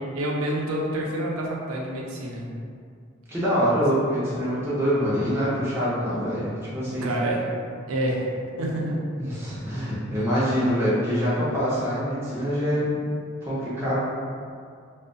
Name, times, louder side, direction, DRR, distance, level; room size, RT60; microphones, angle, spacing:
voice 1, 0.1-2.5 7.0-7.5 7.9-8.3 8.6-9.0, right 1 dB, 90° right, -2 dB, 0.5 m, -27 dB
voice 2, 3.3-7.1 9.2-12.9 13.4-14.0, equal, 10° right, -10 dB, 0.6 m, -25 dB
2.4 x 2.1 x 2.5 m, 2.2 s
head